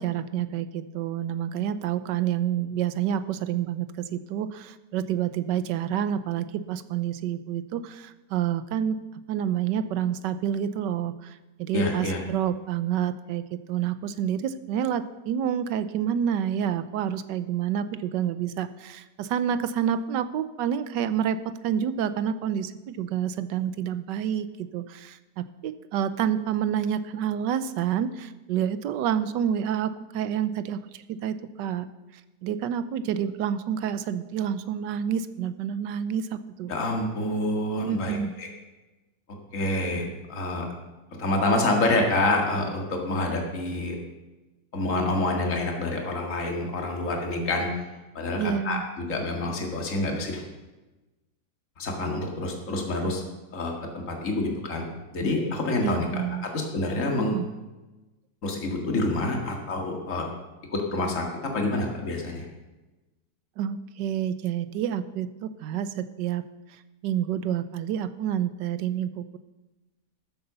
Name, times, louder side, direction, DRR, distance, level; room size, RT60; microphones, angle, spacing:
voice 1, 0.0-9.0 9.3-31.9 32.4-36.7 37.9-38.3 48.4-48.8 55.8-56.5 57.2-57.5 63.6-66.4 67.0-69.4, right 9 dB, 85° right, 13 dB, 1.3 m, -28 dB
voice 2, 11.7-12.2 36.7-38.5 39.5-40.7 41.2-44.0 44.7-47.7 48.1-50.4 51.8-53.2 53.5-54.8 55.1-57.4 58.4-60.3 60.7-62.5, left 2 dB, 45° left, 1 dB, 2.3 m, -27 dB
13.0 x 8.0 x 6.8 m, 1.1 s
omnidirectional pair, 1.9 m